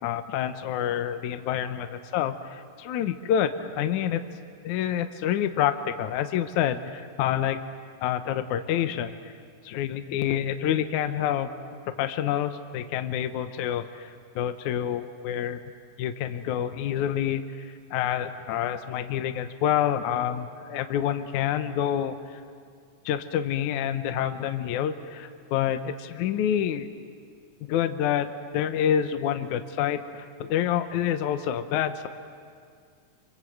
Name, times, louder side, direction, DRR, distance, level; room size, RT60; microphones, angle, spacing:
voice 1, 0.0-4.2 4.6-7.6 8.0-9.3 9.6-11.5 12.0-15.7 16.0-22.4 23.1-26.9 27.6-28.3 28.5-32.1, left 10 dB, 70° left, 8 dB, 1.9 m, -27 dB
26.5 x 26.0 x 7.8 m, 2.2 s
omnidirectional pair, 4.4 m